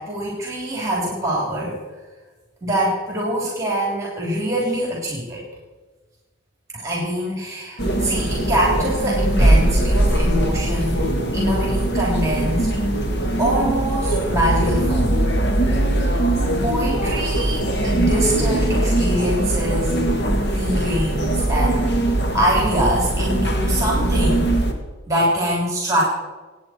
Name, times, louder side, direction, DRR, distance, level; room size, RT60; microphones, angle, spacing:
voice 1, 0.0-1.8 2.6-5.4 6.7-11.1 11.3-12.8 13.4-15.2 15.7-15.8 16.6-19.9 20.5-22.0 22.3-24.5 25.1-26.0, equal, 15° right, -3 dB, 3.4 m, -24 dB
sound 1, 7.8-24.7, right 1 dB, 50° left, 2.0 m, -20 dB
26.5 x 9.3 x 4.5 m, 1.3 s
head